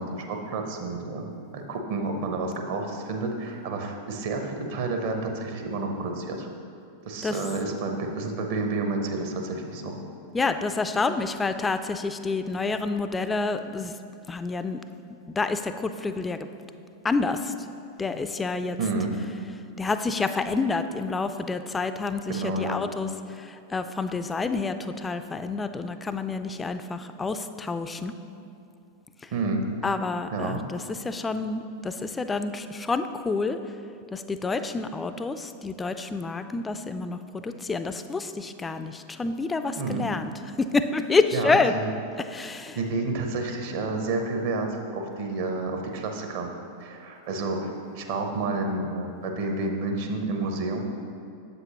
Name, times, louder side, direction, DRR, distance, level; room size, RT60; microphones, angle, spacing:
voice 1, 0.0-6.5 7.0-10.0 18.8-19.1 22.3-22.8 29.3-29.6 30.3-30.6 39.8-40.1 41.3-41.9 42.8-46.5 46.8-50.8, right 3 dB, 50° right, 3 dB, 0.9 m, -30 dB
voice 2, 10.3-13.9 14.3-14.8 15.4-16.5 17.0-17.5 18.0-18.8 19.8-28.1 29.8-33.6 34.1-40.3 40.6-41.7 42.2-42.8, left 3 dB, 15° left, 9 dB, 0.3 m, -28 dB
8.1 x 7.6 x 3.0 m, 2.6 s
figure-of-eight pair, 90°, 0 cm